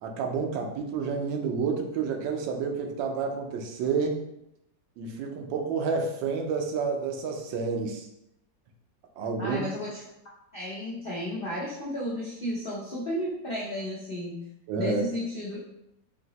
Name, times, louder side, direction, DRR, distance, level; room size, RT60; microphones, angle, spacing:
voice 1, 0.0-4.2 5.0-8.1 9.2-9.7 14.7-15.0, right 5 dB, 85° right, 3 dB, 1.4 m, -29 dB
voice 2, 9.4-10.0 10.5-14.4 14.8-15.6, left 1 dB, 75° left, -5 dB, 0.5 m, -33 dB
4.6 x 2.8 x 2.9 m, 0.82 s
omnidirectional pair, 2.0 m